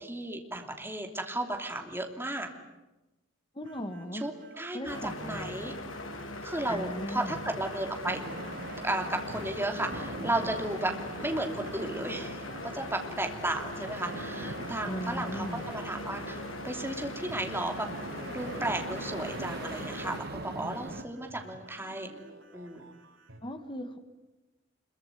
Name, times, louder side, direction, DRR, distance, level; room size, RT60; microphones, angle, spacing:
voice 1, 0.0-2.5 4.2-4.3 4.6-5.7 6.4-8.2 8.8-10.9 11.2-17.9 18.3-22.1 22.5-22.9, right 1 dB, 10° right, 3 dB, 3.0 m, -34 dB
voice 2, 3.5-4.3 4.7-5.8 6.7-7.4 14.8-15.6 23.4-24.0, equal, 25° left, 7 dB, 1.8 m, -38 dB
sound 1, 3.6-23.4, right 2 dB, 80° right, 6.9 m, -53 dB
sound 2, 4.9-20.2, left 2 dB, 90° left, 3.3 m, -40 dB
sound 3, 8.0-21.0, right 2 dB, 55° right, 1.6 m, -42 dB
26.0 x 23.0 x 9.5 m, 1.0 s
head